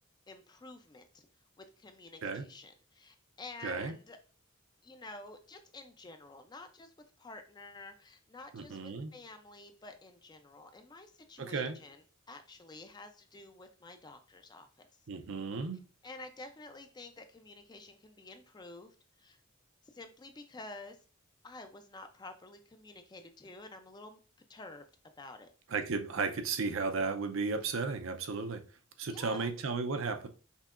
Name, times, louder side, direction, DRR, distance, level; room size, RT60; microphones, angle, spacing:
voice 1, 0.3-1.3 1.6-4.2 4.8-12.0 12.3-14.9 16.0-19.4 19.9-21.0 21.4-24.2 24.5-24.9 25.2-25.5 29.1-29.5, left 2 dB, 20° left, 7 dB, 0.4 m, -50 dB
voice 2, 3.6-3.9 8.5-9.1 11.4-11.8 15.1-15.8 25.7-28.6 29.0-30.3, right 4 dB, 70° right, 7 dB, 0.6 m, -34 dB
5.5 x 2.8 x 2.4 m, 0.37 s
head